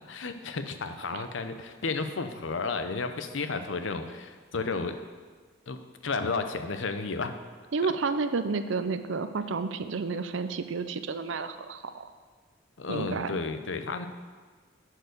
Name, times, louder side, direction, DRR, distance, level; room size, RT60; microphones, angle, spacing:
voice 1, 0.1-5.0 5.7-7.4 7.8-7.9 12.8-14.1, left 4 dB, 75° left, 8 dB, 0.7 m, -32 dB
voice 2, 7.7-12.1 12.9-13.4, right 4 dB, 75° right, 11 dB, 0.5 m, -31 dB
10.5 x 4.7 x 6.6 m, 1.5 s
head